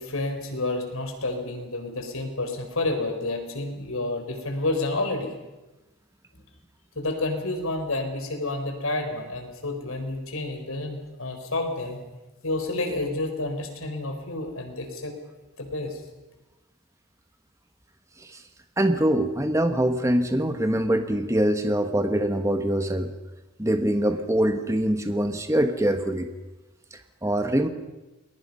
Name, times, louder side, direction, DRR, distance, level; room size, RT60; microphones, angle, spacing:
voice 1, 0.0-5.3 7.0-12.0 12.4-15.2 15.6-16.0, left 2 dB, 85° left, 5 dB, 4.6 m, -29 dB
voice 2, 18.8-23.1 23.6-26.3 27.2-27.7, right 1 dB, 15° right, 7 dB, 1.3 m, -23 dB
29.0 x 21.0 x 5.6 m, 1.1 s
head